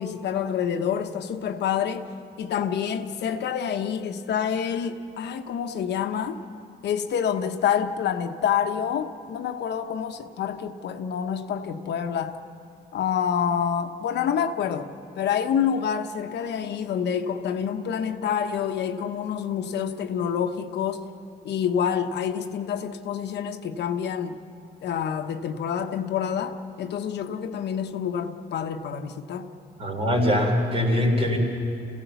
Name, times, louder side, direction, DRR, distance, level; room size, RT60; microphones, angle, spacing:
voice 1, 0.0-2.0 2.4-6.4 6.8-12.4 12.9-14.9 15.2-21.0 21.4-24.4 24.8-29.5, left 8 dB, 85° left, 6 dB, 1.1 m, -27 dB
voice 2, 29.8-31.4, left 1 dB, 35° right, 1 dB, 3.7 m, -22 dB
28.0 x 16.5 x 7.0 m, 2.8 s
cardioid pair, 150°, 17 cm